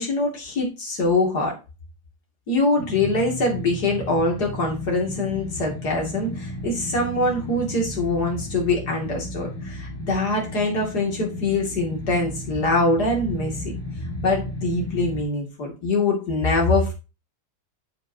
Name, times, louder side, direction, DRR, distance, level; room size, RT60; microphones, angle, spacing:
voice 1, 0.0-1.6 2.5-13.7 14.2-16.9, left 2 dB, 85° left, 0 dB, 3.2 m, -23 dB
sound 1, 2.8-15.2, left 1 dB, 15° left, 2.0 m, -34 dB
8.1 x 7.9 x 2.8 m, 0.29 s
omnidirectional pair, 1.7 m